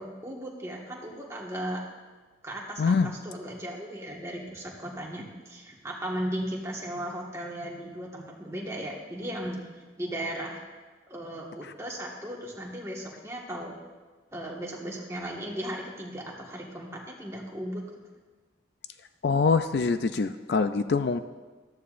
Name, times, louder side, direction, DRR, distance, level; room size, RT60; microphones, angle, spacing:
voice 1, 0.0-1.8 2.4-10.6 11.1-13.8 14.3-17.8, right 1 dB, 15° right, -3 dB, 1.6 m, -36 dB
voice 2, 2.8-3.1 11.6-11.7 19.2-21.2, left 4 dB, 60° left, 10 dB, 0.4 m, -24 dB
14.0 x 13.0 x 2.5 m, 1.3 s
head